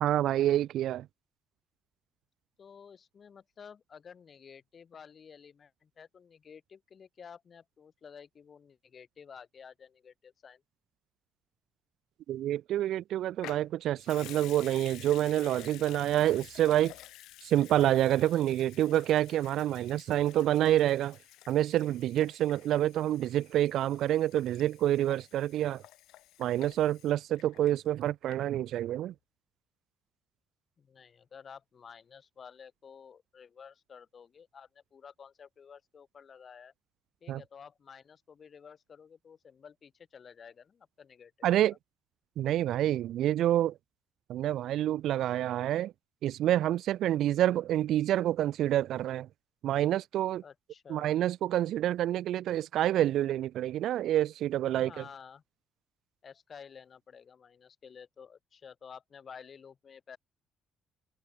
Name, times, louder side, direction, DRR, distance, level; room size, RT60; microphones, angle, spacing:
voice 1, 0.0-1.1 12.3-16.9 17.4-21.2 21.5-25.8 26.4-29.1 37.3-37.4 41.4-41.7 42.4-43.7 44.3-45.9 46.2-49.3 49.6-50.4 50.9-55.0, right 12 dB, 60° right, 0.4 m, -27 dB
voice 2, 2.6-10.6 30.8-36.7 37.2-41.8 50.4-51.2 54.7-55.4 56.2-60.2, left 6 dB, 30° left, 4.9 m, -52 dB
Water tap faucet / Sink (filling or washing) / Liquid, 13.4-28.0 28.3-28.4, left 16 dB, 80° left, 3.6 m, -51 dB
cardioid pair, 165°, 0 cm